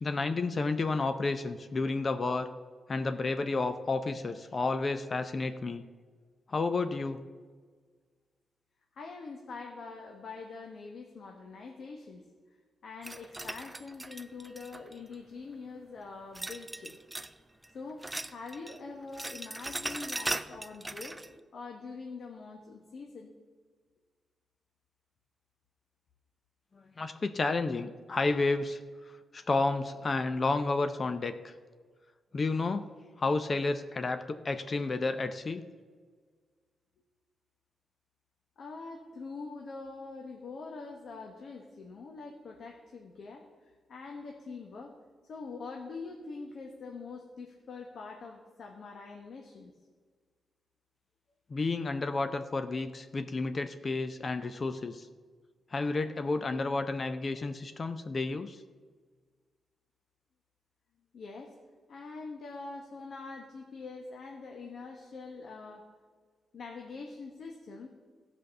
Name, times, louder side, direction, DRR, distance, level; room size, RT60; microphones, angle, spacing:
voice 1, 0.0-2.5 2.9-5.8 6.5-7.2 27.0-28.8 29.3-31.5 32.3-32.9 33.2-35.6 51.5-55.1 55.7-58.6, left 3 dB, 45° left, 9 dB, 0.6 m, -31 dB
voice 2, 8.9-12.2 12.8-17.0 17.7-21.2 21.5-23.3 38.6-43.4 43.9-44.9 45.3-49.7 61.1-61.5 61.9-65.8 66.5-67.9, left 4 dB, 70° left, 1 dB, 1.2 m, -44 dB
sound 1, 13.0-15.1 16.3-17.4 17.6-18.8 19.0-21.3, right 2 dB, 15° right, 0.5 m, -39 dB
14.5 x 5.2 x 6.7 m, 1.5 s
cardioid pair, 65°, 0 cm